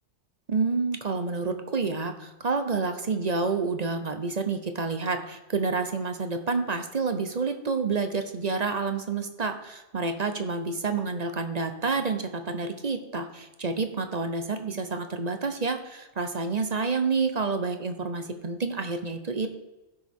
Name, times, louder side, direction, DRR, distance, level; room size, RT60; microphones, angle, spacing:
voice 1, 0.5-19.5, right 4 dB, 40° right, 7 dB, 0.8 m, -29 dB
15.5 x 6.5 x 3.6 m, 1.1 s
omnidirectional pair, 1.2 m